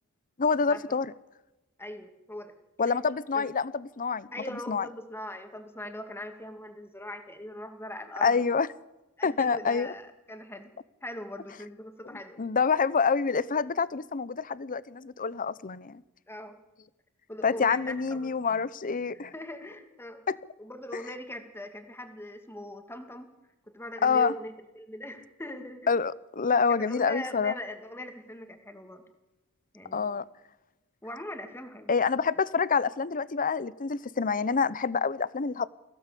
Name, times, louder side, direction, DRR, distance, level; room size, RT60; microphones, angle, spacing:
voice 1, 0.4-1.1 2.8-4.3 4.7-4.9 8.2-8.7 9.2-9.9 12.4-16.0 17.4-19.3 20.3-20.4 24.0-24.3 25.9-27.5 29.9-30.2 31.9-35.7, left 5 dB, 40° left, 0.7 m, -27 dB
voice 2, 1.8-2.5 2.9-3.0 3.3-3.5 4.3-8.4 9.2-10.7 11.0-12.4 16.3-16.6 17.3-18.3 19.1-20.2 20.6-23.3 23.7-25.9 26.7-29.0 29.7-30.1 31.0-32.1, left 1 dB, 10° left, 2.3 m, -41 dB
22.0 x 16.5 x 8.4 m
head